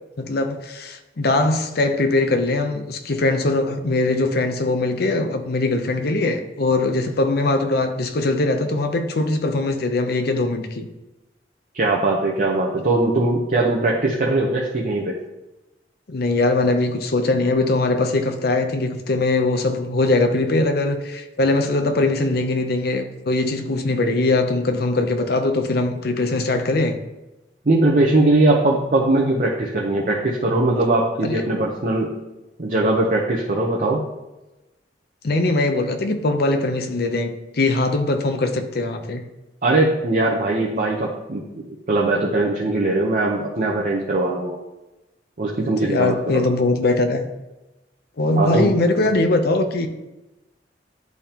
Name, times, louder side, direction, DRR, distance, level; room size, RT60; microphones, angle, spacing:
voice 1, 0.2-10.9 16.1-27.0 31.2-31.4 35.2-39.2 45.6-47.2 48.2-49.9, left 2 dB, 60° left, 6 dB, 0.7 m, -21 dB
voice 2, 11.7-15.1 27.7-32.1 32.6-34.0 39.6-44.6 45.4-46.4 48.4-48.7, right 2 dB, 50° right, -2 dB, 0.8 m, -20 dB
10.5 x 3.5 x 2.9 m, 1.0 s
head